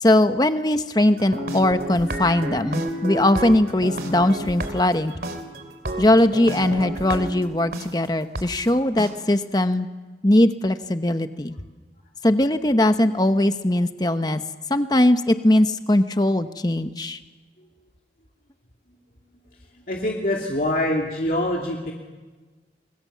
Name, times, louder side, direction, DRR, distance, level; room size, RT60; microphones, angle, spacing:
voice 1, 0.0-5.1 6.0-9.9 10.2-11.5 12.2-14.4 14.7-17.2, left 1 dB, 25° left, 9 dB, 1.0 m, -20 dB
sound 1, 1.1-7.8 8.3-8.4 9.0-9.1, equal, 55° right, 2.8 m, -31 dB
voice 2, 19.9-21.9, left 1 dB, 50° left, -1 dB, 2.7 m, -24 dB
29.0 x 22.5 x 7.4 m, 1.3 s
head